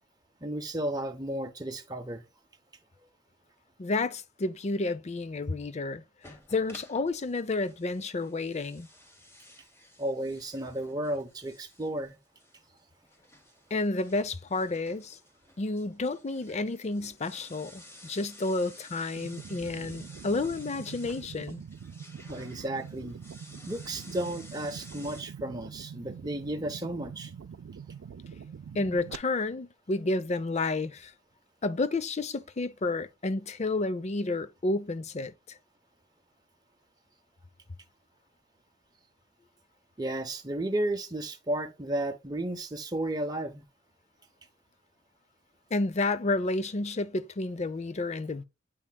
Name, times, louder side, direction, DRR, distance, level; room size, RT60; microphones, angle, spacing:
voice 1, 0.4-2.2 10.0-12.2 22.2-23.2 23.7-27.3 40.0-43.6, right 1 dB, 20° right, 0.8 m, -33 dB
voice 2, 3.8-6.0 6.5-8.9 13.7-15.2 15.6-21.6 28.7-31.1 31.6-35.6 45.7-48.4, left 2 dB, 35° left, 0.5 m, -30 dB
sound 1, 6.2-25.2, left 1 dB, 15° left, 1.3 m, -53 dB
sound 2, 19.2-29.2, right 7 dB, 80° right, 0.4 m, -44 dB
8.5 x 5.4 x 2.2 m
head